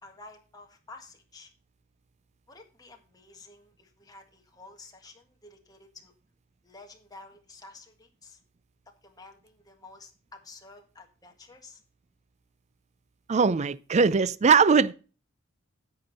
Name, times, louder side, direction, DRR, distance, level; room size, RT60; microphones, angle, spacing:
voice 1, 0.0-1.5 2.5-6.1 6.6-8.4 8.9-11.8, left 3 dB, 20° left, 1.7 m, -51 dB
voice 2, 13.3-14.9, right 5 dB, 35° right, 0.4 m, -20 dB
10.5 x 7.6 x 4.2 m
head